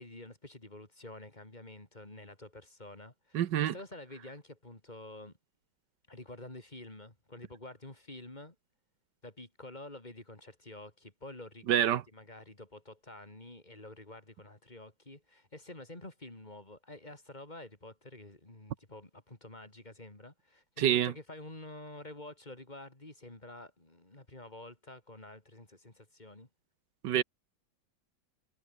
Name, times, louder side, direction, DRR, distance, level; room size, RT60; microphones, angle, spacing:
voice 1, 0.0-5.3 6.1-8.6 9.2-26.5, left 2 dB, 20° left, 3.5 m, -49 dB
voice 2, 3.3-3.7 11.7-12.0 20.8-21.1 27.0-27.2, right 11 dB, 65° right, 1.5 m, -26 dB
omnidirectional pair, 2.2 m